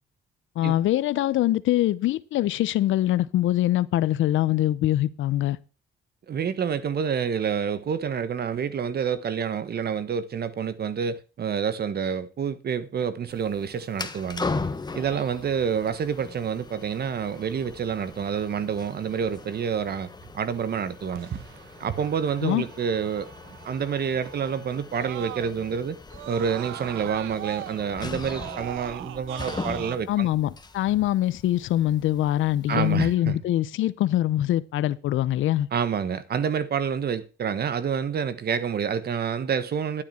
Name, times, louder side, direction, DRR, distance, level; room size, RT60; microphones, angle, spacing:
voice 1, 0.6-5.6 22.4-22.6 30.1-35.7, left 13 dB, 80° left, 0.8 m, -23 dB
voice 2, 6.3-14.5 14.9-21.5 21.8-23.3 23.6-26.0 26.3-30.3 32.7-33.3 35.7-40.0, right 7 dB, 55° right, 1.3 m, -28 dB
sound 1, 13.3-33.1, left 3 dB, 20° left, 1.4 m, -39 dB
Screaming, 21.2-25.8 26.1-30.0, right 15 dB, 85° right, 0.6 m, -41 dB
11.5 x 9.9 x 4.4 m
cardioid pair, 90°, 20 cm